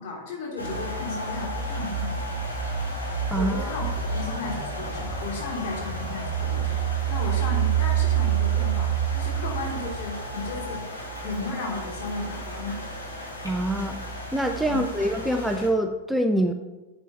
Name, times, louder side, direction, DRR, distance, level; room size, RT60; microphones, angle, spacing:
voice 1, 0.0-2.4 3.3-10.8 11.2-12.8 14.6-14.8, left 3 dB, 50° left, -2 dB, 3.0 m, -34 dB
sound 1, 0.6-15.7, equal, 85° left, 2.7 m, -34 dB
sound 2, 1.4-5.3 5.6-10.2, right 14 dB, 65° right, 0.5 m, -28 dB
voice 2, 3.3-3.7 13.4-14.0 14.3-16.5, right 1 dB, 5° right, 6 dB, 0.5 m, -25 dB
11.5 x 7.6 x 3.0 m, 1.1 s
figure-of-eight pair, 90°, 0 cm